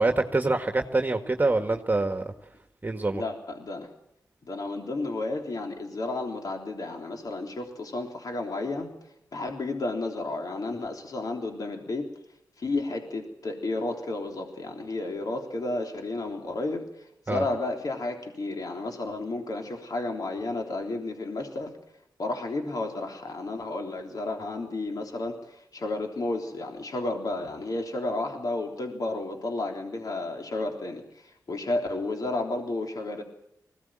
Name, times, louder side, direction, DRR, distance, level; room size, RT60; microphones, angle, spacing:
voice 1, 0.0-2.2 2.8-3.2 17.3-17.4, right 2 dB, 25° right, 5 dB, 1.7 m, -25 dB
voice 2, 3.1-3.9 4.5-8.9 9.3-12.1 12.6-16.8 17.3-21.7 22.2-33.2, left 2 dB, 60° left, 2 dB, 3.5 m, -32 dB
21.0 x 17.0 x 8.9 m, 0.77 s
cardioid pair, 55°, 7 cm